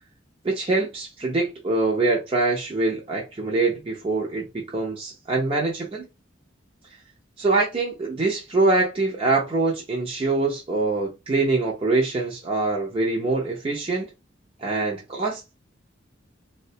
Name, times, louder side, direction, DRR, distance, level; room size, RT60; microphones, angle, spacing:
voice 1, 0.4-6.1 7.4-14.1 14.6-15.6, right 3 dB, 30° right, 0.5 m, -24 dB
3.5 x 2.1 x 2.7 m
head